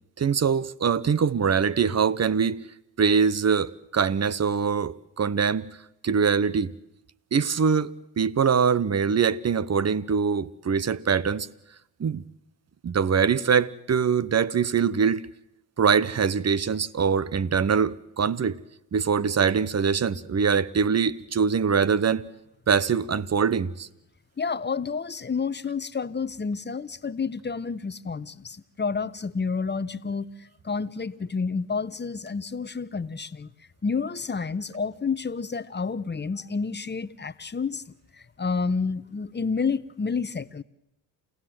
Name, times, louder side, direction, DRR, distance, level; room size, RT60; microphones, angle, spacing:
voice 1, 0.2-2.6 3.0-5.7 6.0-6.7 7.3-11.5 12.0-12.2 12.8-15.2 15.8-18.6 18.9-22.2 22.7-23.9, right 6 dB, 35° right, 1.0 m, -23 dB
voice 2, 24.4-30.3 30.6-33.5 33.8-37.8 38.4-40.6, left 5 dB, 25° left, 1.0 m, -29 dB
29.0 x 16.0 x 7.9 m
supercardioid pair, 65°, 45 cm